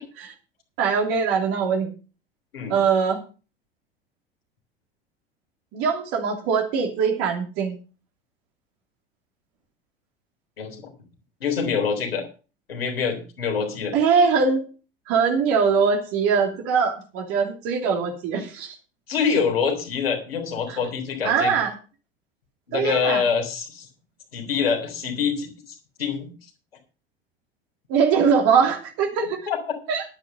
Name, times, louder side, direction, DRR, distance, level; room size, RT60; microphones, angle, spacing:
voice 1, 0.8-1.9 2.7-3.2 5.7-7.8 13.9-14.6 15.1-18.8 20.7-20.8 21.2-21.8 22.7-23.2 27.9-29.3 29.9-30.0, right 6 dB, 50° right, 2 dB, 2.9 m, -22 dB
voice 2, 10.6-10.9 11.4-12.3 12.7-14.0 19.1-21.5 22.7-23.9 24.3-25.5 26.0-26.3 29.5-29.8, left 6 dB, 80° left, 3 dB, 3.5 m, -25 dB
11.0 x 9.1 x 5.4 m, 0.34 s
figure-of-eight pair, 75°, 29 cm